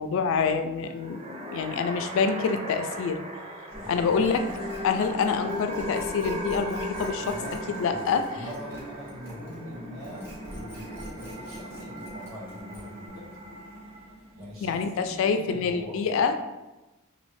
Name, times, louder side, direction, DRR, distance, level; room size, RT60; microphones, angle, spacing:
voice 1, 0.0-3.2 3.9-4.4 4.8-7.4 7.8-8.2 14.6-16.3, left 5 dB, 65° left, 9 dB, 0.3 m, -26 dB
sound 1, 0.8-14.2, left 1 dB, 30° right, 0.4 m, -38 dB
sound 2, 3.7-15.0, equal, 50° right, 1.2 m, -41 dB
voice 2, 3.8-4.3 7.2-13.5 14.3-16.0, equal, 70° right, -7 dB, 1.4 m, -43 dB
sound 3, 4.2-9.7 10.0-13.1, equal, 10° right, 0.9 m, -47 dB
3.0 x 2.6 x 3.0 m, 1.1 s
head